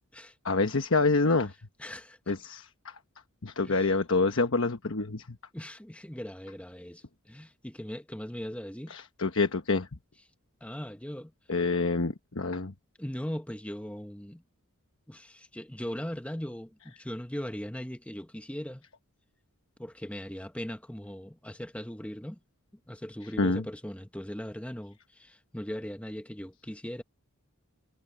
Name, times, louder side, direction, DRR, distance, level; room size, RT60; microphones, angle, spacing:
voice 1, 0.4-1.5 2.3-3.0 3.4-5.4 8.9-9.9 11.5-12.7 23.4-23.6, left 3 dB, 60° left, 1.1 m, -27 dB
voice 2, 1.8-2.2 3.6-3.9 5.5-8.9 10.6-11.3 13.0-14.4 15.1-18.8 19.8-22.4 22.9-27.0, equal, 5° left, 0.9 m, -39 dB
head